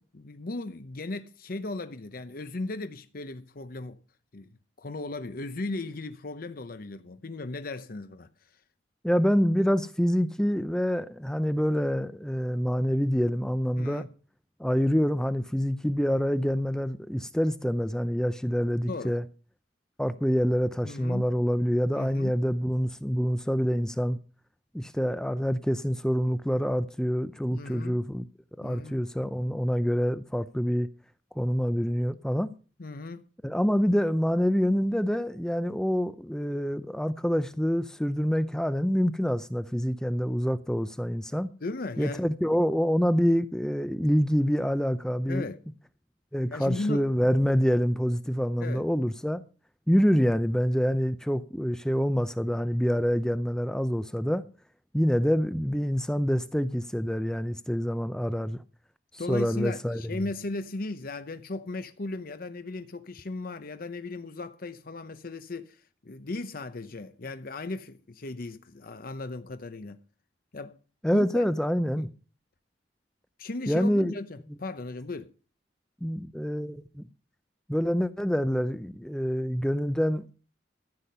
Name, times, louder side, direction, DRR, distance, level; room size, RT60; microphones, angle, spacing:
voice 1, 0.2-4.0 4.3-4.5 4.8-8.6 13.8-14.1 18.9-19.2 20.8-21.3 21.9-22.4 27.5-28.0 28.6-29.0 32.8-33.2 41.6-42.2 45.3-45.6 46.5-47.1 48.6-48.9 59.2-70.0 70.5-70.8 71.1-71.5 72.0-72.1 73.4-75.3, left 2 dB, 50° left, 0.8 m, -36 dB
voice 2, 9.0-14.0 14.6-19.2 20.0-24.2 24.7-28.2 28.6-30.9 31.4-32.5 33.4-41.5 42.0-45.5 46.3-49.4 49.9-54.4 54.9-58.6 59.3-60.0 71.0-72.1 73.7-74.2 76.0-77.1 77.7-80.3, equal, 5° left, 0.5 m, -26 dB
14.0 x 8.3 x 5.5 m
head